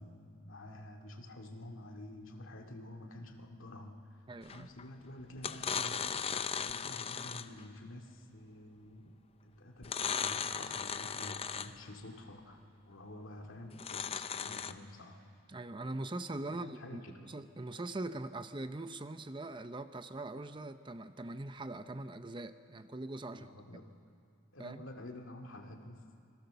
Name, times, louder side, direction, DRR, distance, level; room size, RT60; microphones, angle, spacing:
voice 1, 0.0-4.0 4.4-9.2 9.4-15.2 16.5-17.1 23.3-23.8 24.5-26.0, left 1 dB, 70° left, 3 dB, 2.3 m, -49 dB
voice 2, 4.3-4.7 15.5-23.5 24.6-24.8, right 2 dB, 25° right, 10 dB, 0.6 m, -42 dB
sound 1, 4.5-4.8 5.4-7.6 9.8-11.9 13.7-14.7, left 7 dB, 30° left, 0.6 m, -37 dB
28.5 x 22.0 x 6.9 m, 2.4 s
head